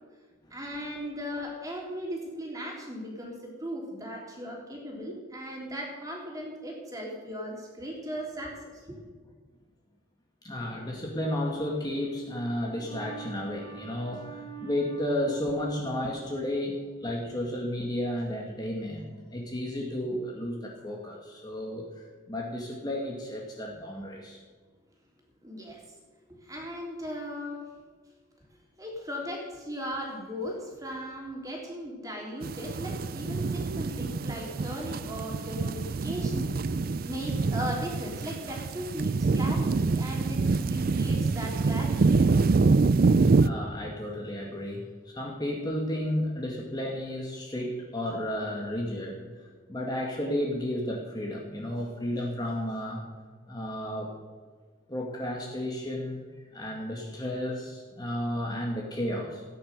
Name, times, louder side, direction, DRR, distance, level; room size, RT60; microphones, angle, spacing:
voice 1, 0.5-9.0 25.4-26.0 26.3-27.7 28.8-42.1, equal, 15° right, -1 dB, 3.3 m, -37 dB
voice 2, 10.4-24.4 43.4-53.0 53.5-54.1 54.9-56.2 56.5-59.4, left 1 dB, 20° left, -1 dB, 1.9 m, -33 dB
sound 1, 32.4-43.5, right 4 dB, 45° right, 0.4 m, -26 dB
16.0 x 10.0 x 6.7 m, 1.5 s
head